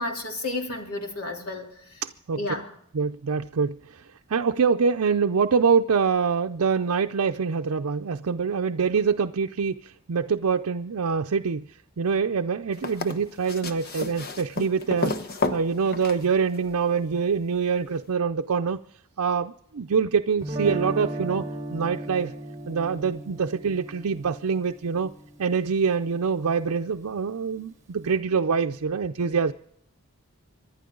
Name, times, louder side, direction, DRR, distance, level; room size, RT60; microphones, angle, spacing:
voice 1, 0.0-2.0 2.3-2.7, left 2 dB, 80° left, 3.3 m, -32 dB
voice 2, 2.9-4.0 4.3-11.7 12.0-15.2 15.5-18.8 19.2-21.4 21.7-22.3 22.7-25.1 25.4-29.5, right 5 dB, 80° right, 0.5 m, -25 dB
sound 1, 12.7-16.8 18.1-18.2, left 3 dB, 45° left, 1.1 m, -32 dB
Guitar, 20.4-26.4, right 1 dB, 15° right, 3.8 m, -36 dB
26.0 x 11.5 x 3.9 m
head